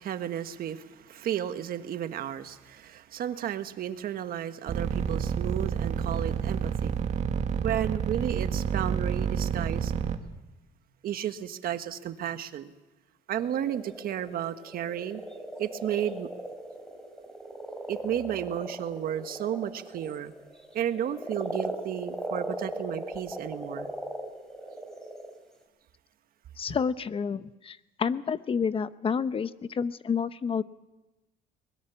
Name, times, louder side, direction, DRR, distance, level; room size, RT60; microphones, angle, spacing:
voice 1, 0.0-7.0 7.6-9.9 11.0-12.7 13.3-15.2 15.6-16.3 17.9-20.3 20.7-23.9, right 10 dB, 60° right, 9 dB, 1.4 m, -33 dB
sound 1, 4.7-10.2, right 7 dB, 45° right, 1.8 m, -28 dB
sound 2, 13.4-25.6, right 1 dB, 5° left, 4.2 m, -38 dB
voice 2, 26.6-30.6, left 6 dB, 35° left, 14 dB, 0.8 m, -29 dB
22.5 x 21.0 x 7.1 m, 1.1 s
cardioid pair, 110°, 17 cm